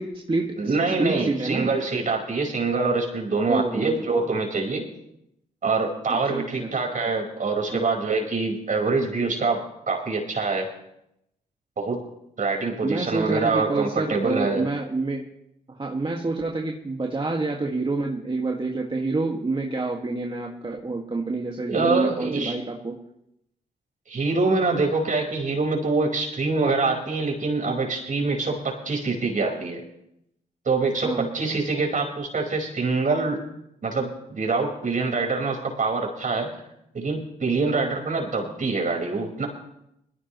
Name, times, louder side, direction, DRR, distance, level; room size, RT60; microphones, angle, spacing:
voice 1, 0.0-1.7 3.5-4.0 6.1-6.7 7.7-7.8 12.8-15.2 15.7-23.0 31.0-31.3, right 3 dB, 30° right, 0 dB, 1.9 m, -28 dB
voice 2, 0.6-4.8 5.6-10.7 11.8-12.0 12.4-14.7 21.7-22.6 24.1-29.8 30.6-33.4 33.8-36.5 36.9-39.5, right 3 dB, 50° right, 1 dB, 5.0 m, -25 dB
20.5 x 15.0 x 3.1 m, 0.81 s
supercardioid pair, 55°, 17 cm